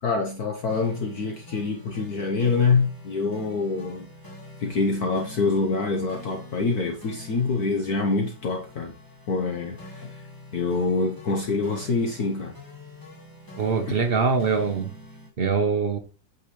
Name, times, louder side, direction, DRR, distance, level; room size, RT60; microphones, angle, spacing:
voice 1, 0.0-4.1 4.6-8.9 9.3-10.2 10.5-12.5, left 4 dB, 55° left, 1.4 m, -25 dB
sound 1, 0.7-15.3, left 1 dB, 10° left, 1.7 m, -45 dB
voice 2, 13.6-14.9 15.4-16.0, right 5 dB, 45° right, 0.8 m, -23 dB
8.6 x 5.5 x 3.1 m
omnidirectional pair, 2.0 m